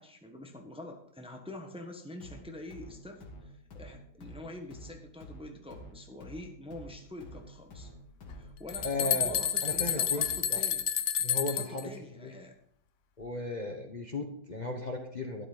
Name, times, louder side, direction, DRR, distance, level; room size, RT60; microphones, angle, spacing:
voice 1, 0.0-7.9 8.3-10.9 11.4-12.5, left 1 dB, 5° right, 3 dB, 1.2 m, -46 dB
sound 1, 2.2-10.7, equal, 85° left, 2.3 m, -50 dB
sound 2, 8.3-8.4 8.7-11.8, left 9 dB, 60° left, 0.9 m, -30 dB
voice 2, 8.8-10.6 11.2-11.9 12.2-12.3 13.2-15.5, left 2 dB, 30° left, 2 dB, 1.1 m, -36 dB
12.5 x 11.5 x 4.0 m, 0.66 s
omnidirectional pair, 1.8 m